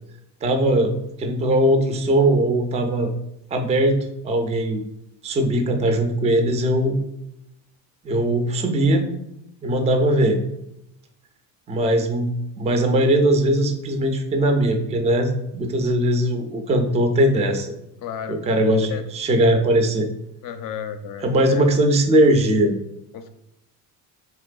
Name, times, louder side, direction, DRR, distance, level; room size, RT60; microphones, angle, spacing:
voice 1, 0.4-0.9 1.2-3.1 3.5-4.8 5.2-7.0 8.0-9.1 9.6-10.4 11.7-12.3 12.6-17.7 18.3-20.1 21.2-22.8, right 1 dB, 15° right, 4 dB, 0.3 m, -20 dB
voice 2, 18.0-18.4 18.9-19.0 20.4-21.6 23.1-23.3, left 8 dB, 50° left, 9 dB, 0.4 m, -33 dB
3.2 x 2.9 x 2.3 m, 0.82 s
supercardioid pair, 85°, 44 cm